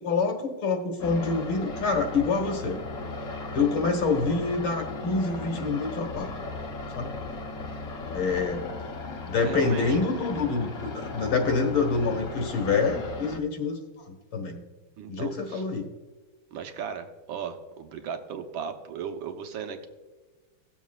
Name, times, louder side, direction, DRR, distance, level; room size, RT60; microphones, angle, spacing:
voice 1, 0.0-2.8 3.5-6.3 6.9-7.2 8.1-8.6 9.3-13.8 14.1-14.6 15.1-15.9, left 4 dB, 85° left, 3 dB, 2.4 m, -26 dB
sound 1, 1.0-13.4, left 3 dB, 50° left, 1.2 m, -37 dB
voice 2, 9.4-10.0 15.0-15.6 16.5-19.9, right 7 dB, 75° right, 6 dB, 1.7 m, -36 dB
18.0 x 7.2 x 2.4 m, 1.3 s
omnidirectional pair, 2.2 m